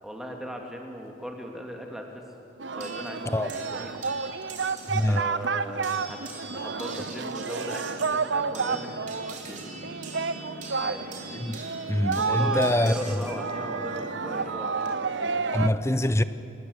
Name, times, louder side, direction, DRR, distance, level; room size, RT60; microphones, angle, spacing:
voice 1, 0.0-2.2 2.7-3.9 4.9-6.2 6.5-9.6 10.8-11.0 12.2-15.5, equal, ahead, 2.7 m, -38 dB
Singing, 2.6-15.7, right 5 dB, 70° right, 0.8 m, -31 dB
sound 1, 2.8-5.2 5.8-13.4 14.5-14.9, right 4 dB, 40° right, 3.6 m, -43 dB
voice 2, 4.9-5.2 11.4-11.6 11.9-12.9 15.5-16.2, left 1 dB, 15° left, 0.7 m, -24 dB
sound 2, 8.4-9.1 9.3-14.4, equal, 35° left, 7.5 m, -44 dB
29.0 x 20.0 x 8.2 m
head